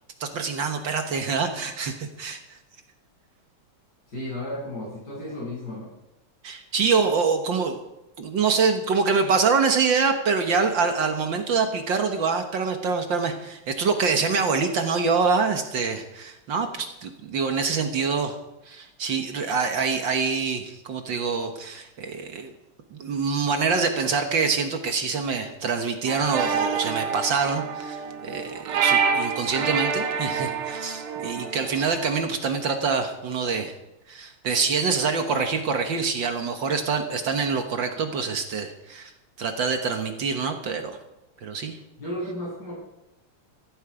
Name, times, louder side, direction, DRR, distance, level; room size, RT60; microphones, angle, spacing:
voice 1, 0.2-2.6 6.4-7.8 8.2-18.4 18.7-22.5 22.9-33.7 34.1-39.1 39.4-41.0 41.4-41.8, right 5 dB, 65° right, 6 dB, 1.9 m, -25 dB
voice 2, 4.1-5.9 42.0-42.7, left 1 dB, 50° left, -5 dB, 8.4 m, -33 dB
sound 1, 26.1-32.1, right 6 dB, 85° right, 2.2 m, -27 dB
16.0 x 15.5 x 5.0 m, 0.92 s
omnidirectional pair, 2.4 m